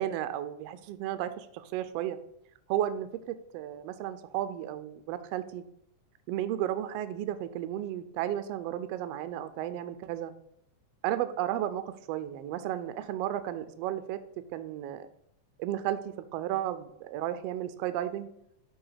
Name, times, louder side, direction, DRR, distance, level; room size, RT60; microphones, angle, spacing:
voice 1, 0.0-2.2 2.7-5.6 6.3-10.3 11.0-14.2 14.5-15.1 15.6-18.3, right 12 dB, 85° right, 11 dB, 1.4 m, -33 dB
5.8 x 4.8 x 5.6 m, 0.74 s
omnidirectional pair, 3.3 m